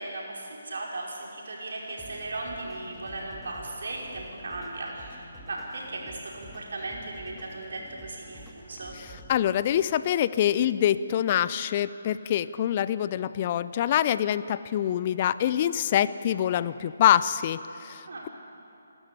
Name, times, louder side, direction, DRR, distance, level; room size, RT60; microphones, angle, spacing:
voice 1, 0.0-8.9 18.1-18.3, right 2 dB, 65° right, -2 dB, 5.1 m, -37 dB
sound 1, 1.9-9.9, equal, ahead, 2.1 m, -49 dB
voice 2, 9.0-18.3, left 10 dB, 35° left, 16 dB, 0.4 m, -25 dB
27.5 x 12.5 x 8.4 m, 2.9 s
figure-of-eight pair, 145°, 0 cm